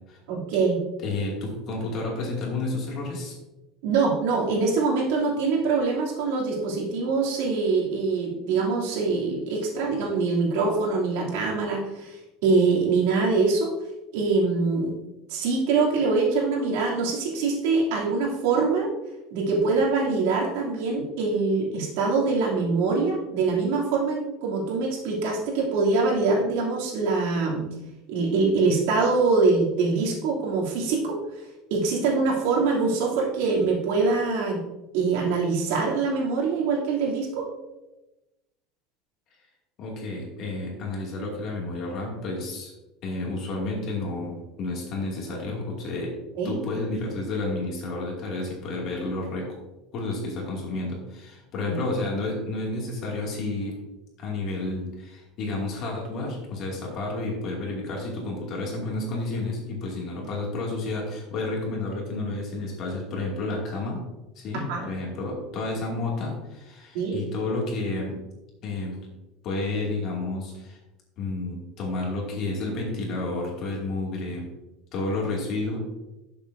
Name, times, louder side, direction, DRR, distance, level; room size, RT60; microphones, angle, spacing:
voice 1, 0.3-0.8 3.8-12.2 12.4-13.7 14.1-14.9 15.3-18.9 19.3-27.7 28.1-31.2 31.7-34.6 34.9-37.5 46.4-46.6 51.7-51.8 64.7-64.9 66.9-67.2, right 4 dB, 75° right, -3 dB, 2.8 m, -24 dB
voice 2, 1.0-3.3 39.8-42.7 43.0-46.1 46.4-49.5 49.9-53.8 54.2-64.1 64.4-68.2 68.6-69.0 69.4-70.8 71.2-74.5 74.9-75.8, left 2 dB, 40° left, -1 dB, 2.4 m, -31 dB
12.0 x 7.1 x 2.7 m, 1.0 s
cardioid pair, 170°, 0 cm